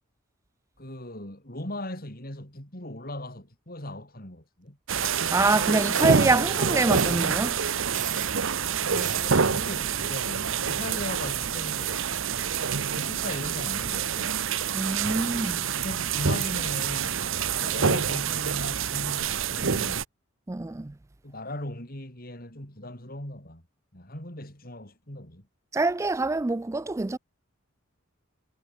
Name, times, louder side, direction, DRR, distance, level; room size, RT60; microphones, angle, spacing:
voice 1, 0.8-4.8 8.6-12.2 12.9-14.4 15.7-17.2 17.5-20.0 21.2-23.6 23.9-25.4, left 1 dB, 45° left, 5.5 m, -38 dB
Watermill-Prague, 4.9-20.0, right 6 dB, 75° right, 1.1 m, -27 dB
sound 1, 5.0-5.2 5.9-6.2 6.9-7.2 7.9-8.3 9.0-9.4, right 13 dB, 40° right, 1.3 m, -36 dB
voice 2, 5.3-7.6 14.7-15.7 20.5-20.9 25.7-27.2, right 3 dB, 15° right, 0.3 m, -25 dB
head